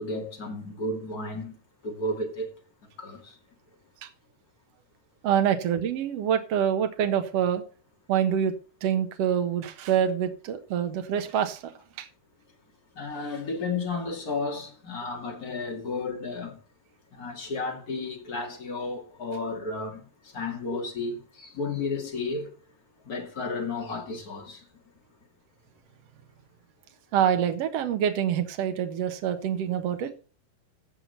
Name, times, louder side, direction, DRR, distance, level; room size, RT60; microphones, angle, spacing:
voice 1, 0.0-1.5 1.8-2.5 3.0-3.3 13.0-16.6 17.1-22.5 23.0-24.6, left 3 dB, 30° left, 2.2 m, -33 dB
voice 2, 5.2-7.6 8.1-8.5 8.8-12.1 20.7-20.8 27.1-30.1, right 9 dB, 65° right, 1.6 m, -26 dB
16.5 x 5.9 x 4.2 m
omnidirectional pair, 4.6 m